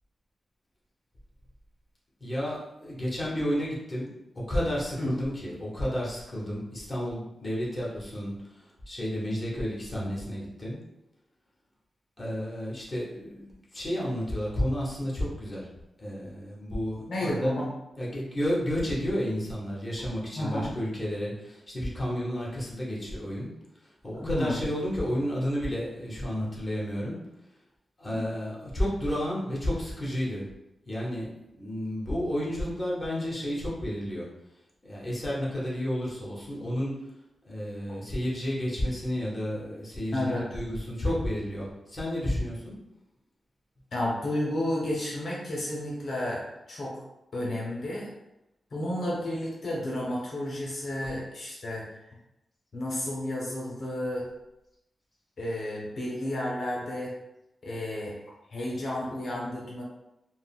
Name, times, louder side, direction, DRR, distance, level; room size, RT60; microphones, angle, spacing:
voice 1, 2.2-4.1 4.3-10.8 12.2-15.7 16.0-17.5 18.0-23.5 23.8-27.2 28.0-30.4 30.8-34.3 34.8-37.1 37.4-42.7, equal, 15° left, -6 dB, 0.8 m, -31 dB
voice 2, 17.1-17.7 20.4-20.7 24.2-24.5 28.1-28.2 40.1-40.4 43.9-46.9 47.3-48.1 48.7-51.8 52.7-54.2 55.4-57.1 57.6-58.1 58.5-59.8, left 1 dB, 55° left, -4 dB, 0.6 m, -31 dB
3.6 x 2.0 x 2.3 m, 0.89 s
wide cardioid pair, 155°, 0 cm